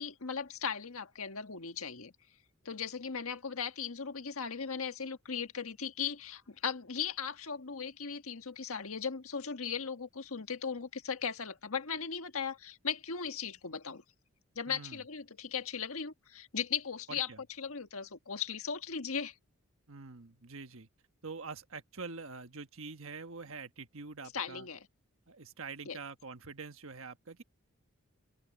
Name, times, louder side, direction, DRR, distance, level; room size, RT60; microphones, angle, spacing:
voice 1, 0.0-2.1 2.6-14.0 14.5-17.3 17.6-19.3 24.3-24.9 25.8-26.0, left 6 dB, 80° left, 1.6 m, -37 dB
voice 2, 14.7-15.0 17.1-17.4 19.9-20.9 21.2-24.7 25.3-27.4, right 4 dB, 70° right, 1.3 m, -45 dB
head